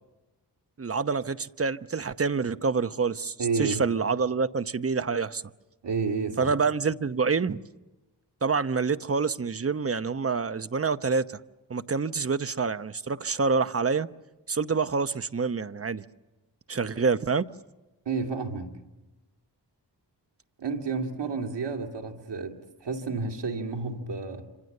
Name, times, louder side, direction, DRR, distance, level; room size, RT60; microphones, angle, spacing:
voice 1, 0.8-3.3 3.6-5.4 6.4-7.6 8.4-11.4 11.7-14.1 14.5-16.0 16.7-17.5, right 5 dB, 35° right, 0.9 m, -27 dB
voice 2, 3.4-3.8 5.8-6.5 18.1-18.8 20.6-24.5, right 4 dB, 90° right, 2.6 m, -31 dB
27.0 x 26.0 x 6.7 m
cardioid pair, 65°, 41 cm